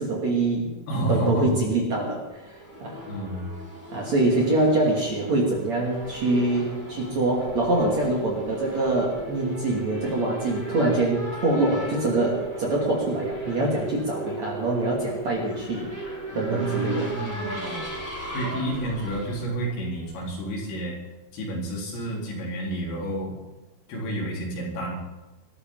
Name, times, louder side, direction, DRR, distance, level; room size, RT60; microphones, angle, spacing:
voice 1, 0.0-0.7 1.1-2.4 2.8-3.0 3.9-15.9 16.3-17.1, right 2 dB, 40° right, -3 dB, 3.2 m, -24 dB
voice 2, 0.9-1.6 3.1-3.5 16.3-17.5 18.3-21.0 21.3-23.3 23.9-25.0, right 1 dB, 75° left, -3 dB, 6.9 m, -30 dB
Race car auto racing / Accelerating revving vroom, 2.2-20.4, right 2 dB, 5° left, 4.9 m, -36 dB
22.5 x 14.0 x 4.0 m, 1.1 s
omnidirectional pair, 6.0 m